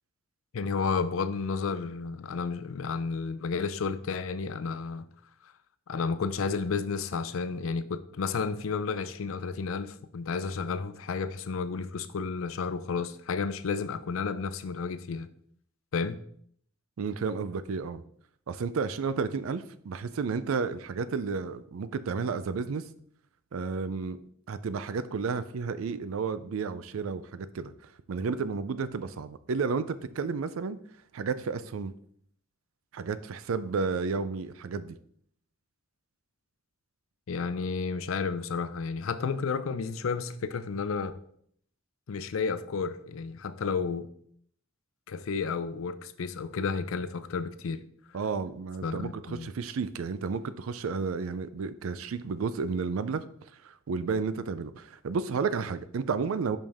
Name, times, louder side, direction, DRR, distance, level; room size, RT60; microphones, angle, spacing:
voice 1, 0.5-5.1 5.9-15.3 15.9-16.2 37.3-41.2 42.1-44.1 45.1-47.8 48.8-49.5, left 5 dB, 75° left, 0.4 m, -32 dB
voice 2, 17.0-18.0 18.5-22.8 23.5-24.2 24.5-27.7 28.1-30.8 31.1-31.9 32.9-35.0 48.1-53.2 53.6-56.6, right 5 dB, 85° right, 0.4 m, -32 dB
5.3 x 5.3 x 3.4 m
head